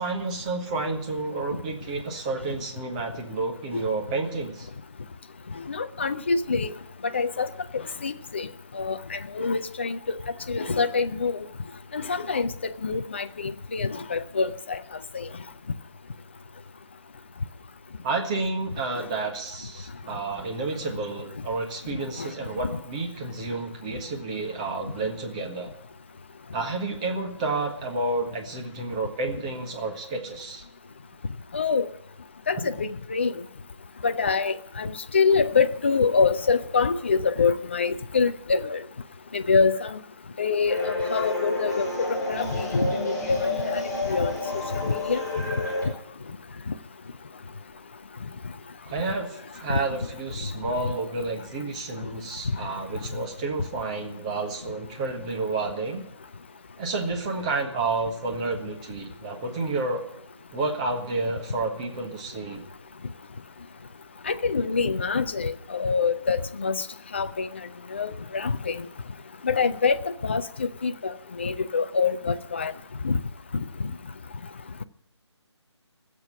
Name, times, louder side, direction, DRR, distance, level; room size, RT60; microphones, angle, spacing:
voice 1, 0.0-4.7 18.0-25.7 26.5-30.6 48.8-56.0 56.8-60.0 60.5-62.6, right 3 dB, 15° right, 2 dB, 1.4 m, -30 dB
voice 2, 5.6-6.7 7.1-8.5 8.7-10.2 10.5-11.4 11.9-14.8 15.1-15.3 21.9-22.3 22.6-22.8 31.5-31.9 32.5-33.3 34.0-38.8 39.3-40.0 40.4-43.8 44.1-44.4 44.8-45.2 49.7-49.8 64.3-66.8 67.1-67.5 67.9-68.9 69.4-72.7 73.0-73.2, left 5 dB, 25° left, 10 dB, 0.5 m, -25 dB
sound 1, 40.7-45.9, left 2 dB, 5° left, 4.5 m, -29 dB
15.0 x 7.6 x 9.9 m, 0.73 s
figure-of-eight pair, 155°, 15 cm